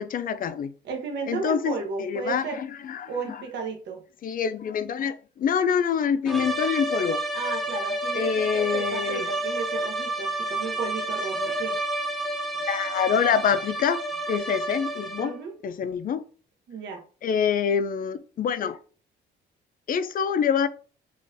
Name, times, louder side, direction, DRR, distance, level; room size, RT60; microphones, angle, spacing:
voice 1, 0.0-0.7 1.3-3.4 4.2-7.2 8.1-9.3 12.7-14.0 14.3-15.3 15.6-16.2 17.2-18.8 19.9-20.7, left 7 dB, 45° left, 0.4 m, -26 dB
voice 2, 0.8-2.6 3.1-4.0 7.3-11.8 15.2-15.5 16.7-17.0, right 5 dB, 65° right, 0.8 m, -34 dB
sound 1, 6.3-15.5, right 1 dB, ahead, 0.6 m, -30 dB
3.7 x 2.4 x 2.6 m
cardioid pair, 90°, 20 cm